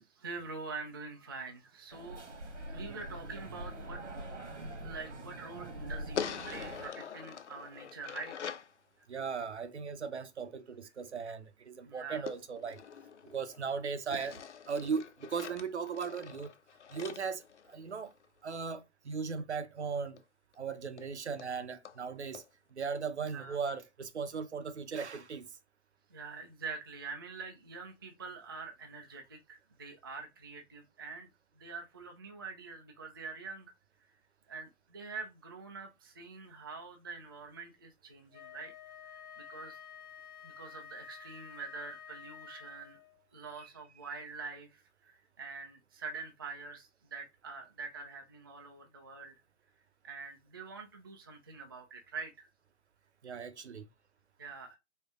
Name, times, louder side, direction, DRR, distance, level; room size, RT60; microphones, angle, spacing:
voice 1, 0.1-2.2 2.7-4.0 4.8-8.5 11.8-12.3 23.3-23.6 26.1-31.3 31.5-33.7 34.5-38.7 39.0-39.8 40.4-43.0 43.3-49.4 50.0-52.5 54.4-54.8, right 4 dB, 20° right, 0.3 m, -45 dB
sound 1, 1.9-6.9, right 1 dB, 85° right, 1.4 m, -44 dB
sound 2, 6.1-8.7 12.3-13.7 14.1-18.2 20.2-20.3 20.5-20.6 21.0-21.1 21.4-21.5 21.8-22.0 22.3-22.5, left 7 dB, 75° left, 0.5 m, -43 dB
voice 2, 9.1-12.8 13.3-14.4 14.7-16.5 16.9-17.4 17.7-18.1 18.4-20.2 20.6-22.4 22.7-25.5 53.2-53.9, right 5 dB, 70° right, 0.7 m, -37 dB
Wind instrument woodwind instrument, 38.3-43.2, left 8 dB, 45° left, 0.8 m, -50 dB
4.4 x 2.3 x 3.5 m
figure-of-eight pair, 125°, 35 cm